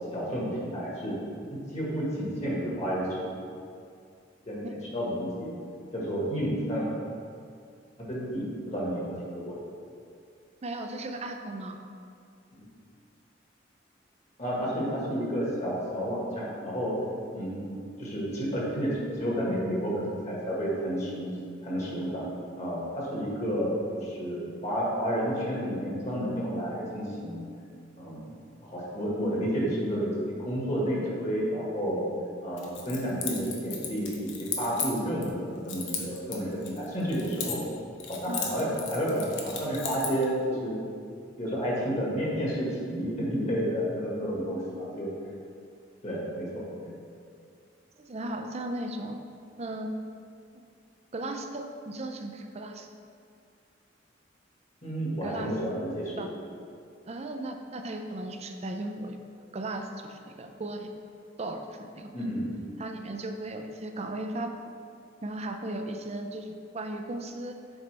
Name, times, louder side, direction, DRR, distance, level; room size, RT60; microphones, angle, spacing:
voice 1, 0.1-1.1 1.5-3.2 4.4-4.6 4.9-5.5 5.9-6.9 8.1-9.6 12.5-12.6 14.4-16.9 17.3-17.6 18.0-21.3 21.6-22.2 22.6-27.4 28.0-28.2 28.6-32.1 32.4-37.6 38.1-40.8 41.4-45.1 46.0-46.9 54.8-56.2 62.1-62.5, equal, 40° left, -5 dB, 1.7 m, -31 dB
voice 2, 10.6-11.8 38.3-38.4 48.0-49.2 49.6-49.9 50.5-50.7 51.1-52.9 55.2-55.5 56.2-56.3 57.0-59.2 59.5-60.9 61.4-62.2 62.8-64.5 65.2-66.5 66.7-67.6, right 2 dB, 35° right, 5 dB, 0.5 m, -36 dB
Keys jangling, 32.6-35.3 35.7-37.8 38.0-40.3, left 6 dB, 90° left, 1.0 m, -35 dB
7.9 x 5.4 x 3.4 m, 2.4 s
head